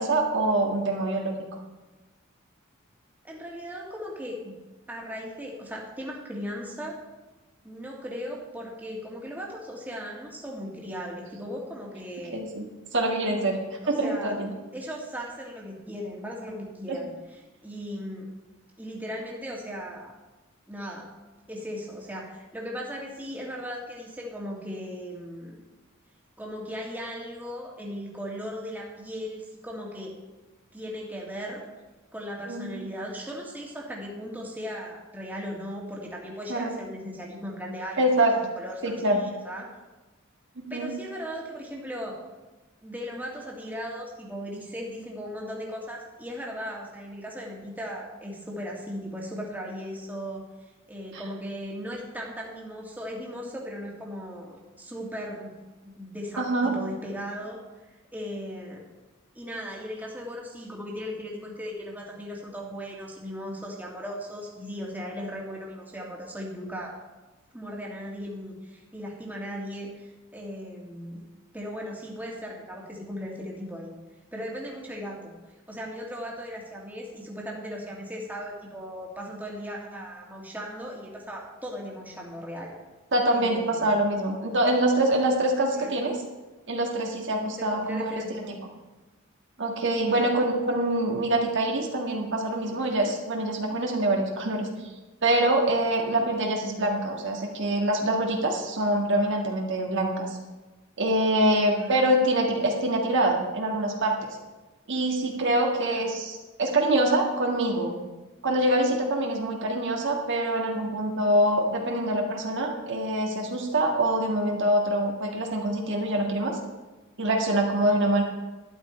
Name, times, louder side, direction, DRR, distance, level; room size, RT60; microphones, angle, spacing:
voice 1, 0.0-1.3 12.3-12.7 12.9-14.5 16.9-17.0 32.4-32.7 36.5-36.7 38.0-38.3 38.8-39.2 40.6-40.9 51.1-51.2 56.4-56.7 83.1-86.1 86.7-88.1 89.6-94.7 95.2-100.4 101.0-104.4 104.9-108.0 108.4-116.6 117.2-118.2, right 1 dB, 60° right, 0 dB, 1.8 m, -25 dB
voice 2, 3.2-4.5 4.9-7.0 7.6-12.4 13.8-14.4 14.7-18.3 18.8-20.1 20.7-21.1 21.5-25.6 26.4-30.1 30.7-31.6 32.1-39.8 40.7-42.2 42.8-50.4 50.9-55.6 55.8-57.6 58.1-58.8 59.3-67.0 67.5-71.2 71.5-73.9 74.3-75.3 75.7-82.7 83.3-83.9 85.7-85.9 87.6-88.6 90.1-90.3 101.7-102.2 105.9-106.1 117.9-118.0, equal, 10° right, -2 dB, 2.1 m, -37 dB
12.0 x 10.5 x 4.4 m, 1.2 s
head